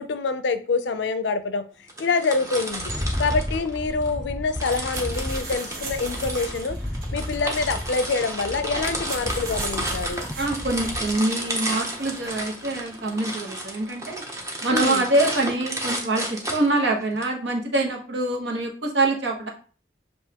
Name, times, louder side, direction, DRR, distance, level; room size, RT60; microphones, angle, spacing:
voice 1, 0.0-1.6 2.0-2.9 3.2-6.8 7.1-10.3 14.7-15.1, left 4 dB, 80° left, 0.4 m, -26 dB
sound 1, 1.9-4.1 4.6-17.2, right 1 dB, 15° right, 0.7 m, -32 dB
Rattle, 2.7-11.2, left 1 dB, 5° left, 0.3 m, -33 dB
sound 2, 4.6-13.2, right 3 dB, 50° right, 0.9 m, -41 dB
voice 2, 10.4-14.2 14.6-19.5, right 2 dB, 80° right, 1.1 m, -25 dB
7.1 x 2.6 x 2.8 m
head